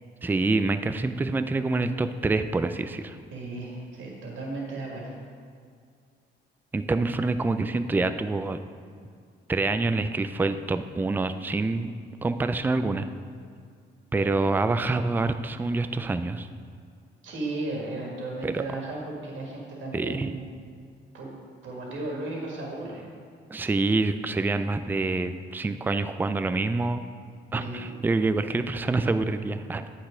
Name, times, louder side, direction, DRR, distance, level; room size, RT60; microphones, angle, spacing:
voice 1, 0.2-3.2 6.7-8.6 9.5-11.9 12.2-13.1 14.1-16.5 18.4-18.6 19.9-20.3 23.5-27.0 27.5-29.9, right 3 dB, 10° right, 10 dB, 0.3 m, -26 dB
voice 2, 3.3-5.2 17.2-20.4 21.1-21.3 21.6-23.1 27.5-28.0, right 2 dB, 75° right, -2 dB, 1.8 m, -35 dB
8.5 x 4.1 x 5.0 m, 2.2 s
cardioid pair, 90°, 20 cm